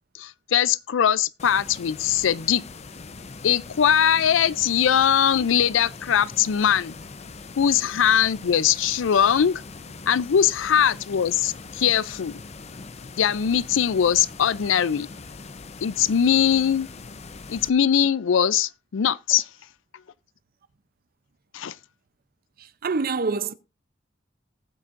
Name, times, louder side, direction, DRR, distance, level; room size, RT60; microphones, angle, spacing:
voice 1, 0.1-2.6 3.4-7.0 7.6-9.6 10.1-12.3 13.2-15.1 15.8-16.9 17.5-19.5 21.5-21.7, left 8 dB, 85° left, 0.4 m, -21 dB
sound 1, 1.4-17.7, left 3 dB, 35° left, 0.6 m, -41 dB
voice 2, 22.6-23.5, right 4 dB, 50° right, 0.6 m, -26 dB
19.0 x 7.4 x 2.5 m
head